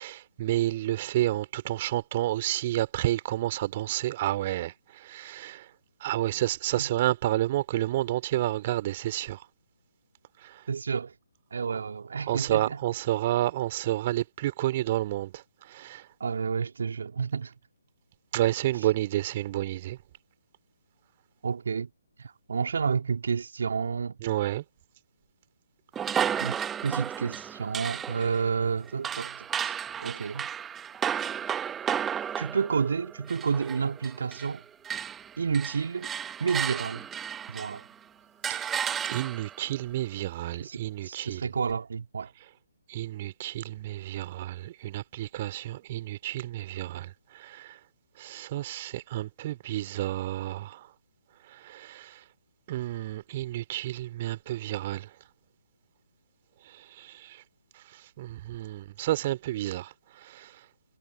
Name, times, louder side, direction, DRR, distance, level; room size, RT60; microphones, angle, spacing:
voice 1, 0.0-5.7 6.0-9.5 10.4-10.6 12.3-16.1 18.3-20.0 24.2-24.6 38.5-38.8 39.1-41.5 42.9-47.8 48.2-50.9 51.5-52.2 52.7-55.1 56.6-57.4 57.7-60.6, right 14 dB, 30° right, 2.9 m, -30 dB
voice 2, 10.7-11.1 11.5-12.8 16.2-17.5 21.4-21.9 22.2-24.2 26.4-29.5 30.0-30.5 32.4-34.6 35.4-36.1 36.4-37.1 37.5-37.8 40.6-42.3, right 5 dB, 55° right, 2.9 m, -30 dB
sound 1, 25.9-34.6 34.8-37.9 38.4-39.6, right 8 dB, 10° right, 1.2 m, -33 dB
figure-of-eight pair, 135°, 0 cm